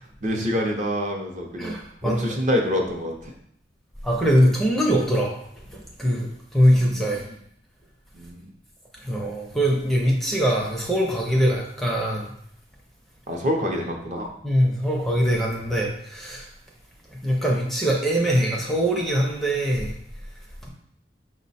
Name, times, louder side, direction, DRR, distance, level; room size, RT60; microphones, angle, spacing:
voice 1, 0.2-1.7 2.0-3.3 6.7-7.2 8.1-8.5 13.3-14.3, equal, 40° right, 1 dB, 0.6 m, -26 dB
voice 2, 1.6-2.4 4.0-5.4 5.7-7.2 9.0-12.3 14.4-16.5 17.2-19.9, equal, ahead, -2 dB, 0.5 m, -22 dB
5.5 x 2.1 x 4.1 m, 0.70 s
head